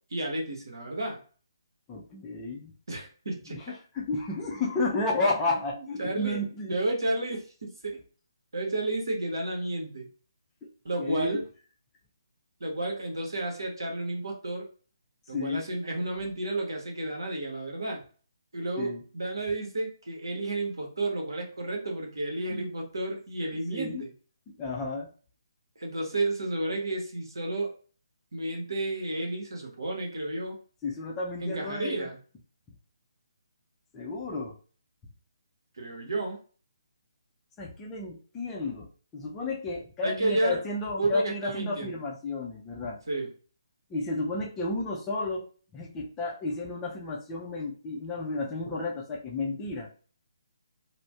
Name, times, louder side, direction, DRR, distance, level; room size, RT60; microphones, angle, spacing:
voice 1, 0.1-1.2 2.9-3.6 5.6-5.7 6.0-8.0 8.5-10.1 10.8-11.4 12.6-14.7 15.3-18.0 18.5-24.1 25.8-27.7 28.3-30.6 31.4-32.2 35.8-36.4 40.0-40.6 41.0-42.0 43.1-43.3, right 2 dB, 65° right, 1 dB, 0.9 m, -31 dB
voice 2, 1.9-2.7 3.5-6.8 10.6-10.7 11.0-11.4 15.3-15.6 18.8-19.0 22.5-22.7 23.7-24.0 24.6-25.1 30.8-32.1 33.9-34.5 37.6-38.9 39.1-43.0 43.9-45.4 45.7-49.9, left 2 dB, 15° left, -3 dB, 0.5 m, -32 dB
2.5 x 2.1 x 3.4 m, 0.40 s
figure-of-eight pair, 140°, 2 cm